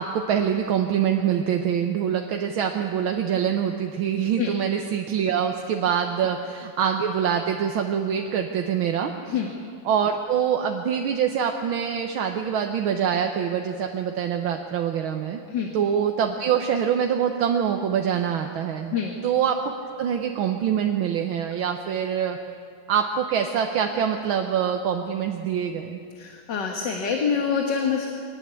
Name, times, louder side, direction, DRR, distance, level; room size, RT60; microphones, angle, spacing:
voice 1, 0.0-9.4 9.9-15.4 15.7-18.9 19.2-19.6 20.0-22.4 22.9-26.0, right 8 dB, 80° right, 4 dB, 1.8 m, -25 dB
voice 2, 26.2-28.1, left 6 dB, 60° left, 2 dB, 2.2 m, -26 dB
23.0 x 19.0 x 8.3 m, 2.3 s
omnidirectional pair, 2.2 m